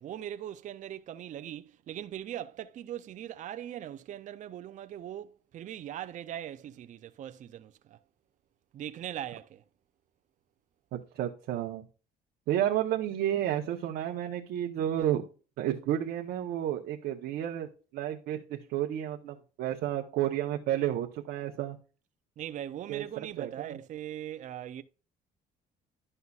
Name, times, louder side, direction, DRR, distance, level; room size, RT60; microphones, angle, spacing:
voice 1, 0.0-8.0 8.7-9.6 22.4-24.8, right 11 dB, 50° right, 0.5 m, -40 dB
voice 2, 10.9-11.9 12.5-15.2 15.6-21.8 22.9-23.8, right 11 dB, 80° right, 0.9 m, -31 dB
11.0 x 5.6 x 2.4 m
cardioid pair, 110°, 17 cm